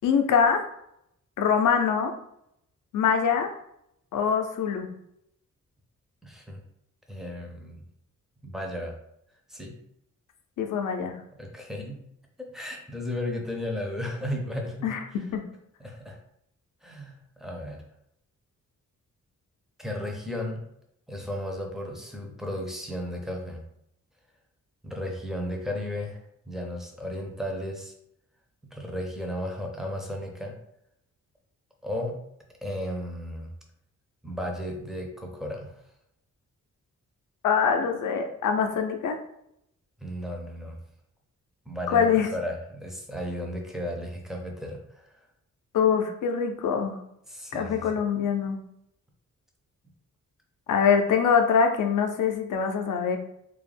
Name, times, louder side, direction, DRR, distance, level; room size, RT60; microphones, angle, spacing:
voice 1, 0.0-0.7 1.4-2.1 2.9-3.5 4.1-4.9 10.6-11.2 14.8-15.0 15.3-15.4 37.4-39.2 41.9-42.3 45.7-47.0 47.5-48.6 50.7-53.2, left 6 dB, 80° left, 5 dB, 0.5 m, -23 dB
voice 2, 6.2-6.6 7.1-7.8 8.4-8.9 9.5-9.7 11.4-12.0 12.4-15.2 15.8-16.2 16.8-17.8 19.8-20.6 21.1-23.6 24.8-27.9 28.7-30.6 31.8-32.2 32.6-33.5 34.2-35.7 40.0-40.8 41.7-45.2 47.3-48.0, left 1 dB, ahead, 1 dB, 0.4 m, -34 dB
2.3 x 2.0 x 3.2 m, 0.77 s
wide cardioid pair, 135°, 31 cm